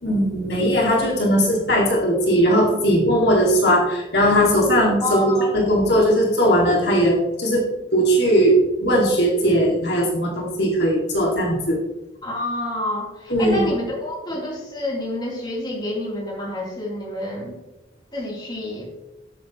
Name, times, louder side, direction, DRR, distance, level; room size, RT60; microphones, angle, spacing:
voice 1, 0.0-7.7 7.9-11.8 13.3-13.7, equal, 60° left, -2 dB, 2.4 m, -19 dB
voice 2, 5.0-5.5 12.2-17.6 18.1-18.8, left 1 dB, 25° left, -4 dB, 3.5 m, -28 dB
19.0 x 8.5 x 3.2 m, 1.0 s
head